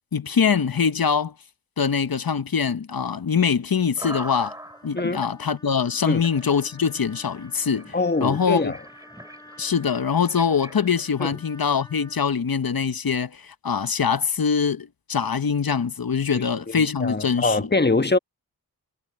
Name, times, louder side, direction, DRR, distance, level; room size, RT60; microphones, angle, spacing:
voice 1, 0.1-1.3 1.8-4.6 4.8-7.9 8.2-8.7 9.6-17.7, left 6 dB, 60° left, 1.0 m, -23 dB
sound 1, 4.0-5.3 5.9-6.0 6.2-11.1, equal, 10° right, 7.7 m, -41 dB
Trumpet, 4.3-12.3, left 1 dB, 10° left, 4.7 m, -51 dB
voice 2, 7.9-8.8 11.2-11.3 16.3-18.2, left 3 dB, 25° left, 1.2 m, -24 dB
wide cardioid pair, 55°, 39 cm